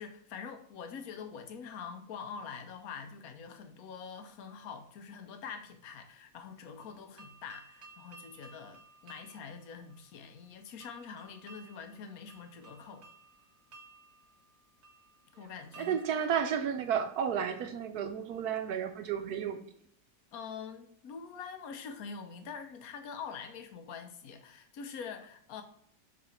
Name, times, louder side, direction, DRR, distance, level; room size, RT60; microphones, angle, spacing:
voice 1, 0.0-13.1 15.4-16.0 20.3-25.6, left 6 dB, 60° left, 1.1 m, -45 dB
sound 1, 6.8-17.6, right 3 dB, 40° right, 1.4 m, -58 dB
voice 2, 15.8-19.6, right 8 dB, 70° right, 1.0 m, -32 dB
6.4 x 4.1 x 4.4 m
omnidirectional pair, 1.9 m